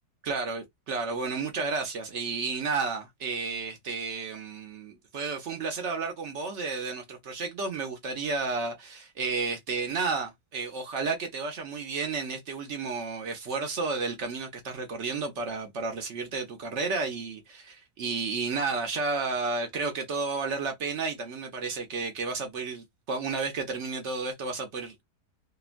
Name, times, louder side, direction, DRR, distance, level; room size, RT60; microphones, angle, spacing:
voice 1, 0.2-25.0, right 4 dB, 60° right, 0.8 m, -32 dB
2.9 x 2.1 x 2.4 m
omnidirectional pair, 1.6 m